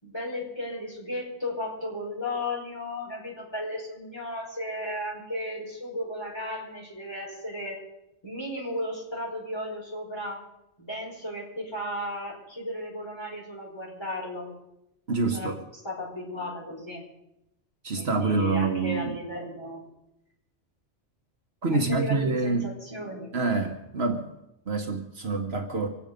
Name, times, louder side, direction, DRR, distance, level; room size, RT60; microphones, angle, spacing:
voice 1, 0.0-7.8 8.2-10.4 10.8-14.5 15.2-15.5 15.8-17.0 18.0-19.8 21.7-23.3, left 1 dB, 20° left, -4 dB, 4.8 m, -35 dB
voice 2, 15.1-15.6 17.8-19.2 21.6-22.8 23.3-24.3 24.7-25.9, right 3 dB, 60° right, 4 dB, 1.5 m, -26 dB
26.0 x 8.8 x 5.2 m, 0.88 s
omnidirectional pair, 1.2 m